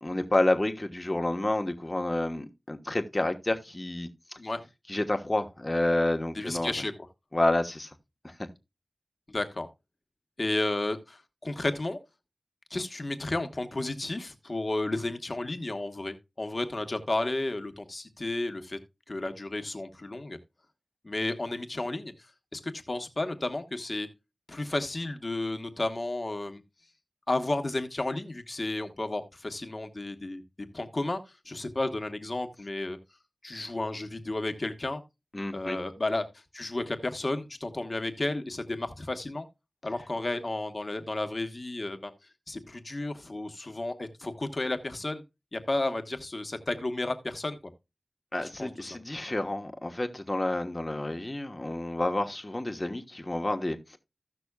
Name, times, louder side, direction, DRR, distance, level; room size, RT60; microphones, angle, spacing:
voice 1, 0.0-4.4 4.9-6.7 7.3-7.9 8.2-8.3 35.3-35.8 48.3-54.0, left 1 dB, 30° left, 1.3 m, -29 dB
voice 2, 4.4-4.7 6.3-6.9 9.3-9.7 10.4-12.0 12.7-18.8 19.1-20.4 21.0-24.1 24.5-26.6 27.3-30.4 30.7-31.2 31.4-33.0 33.4-35.0 35.5-36.3 36.5-39.5 39.8-42.1 42.5-45.2 45.5-47.6 48.4-49.0, left 2 dB, 50° left, 1.4 m, -32 dB
16.0 x 6.1 x 2.3 m
cardioid pair, 45°, 0 cm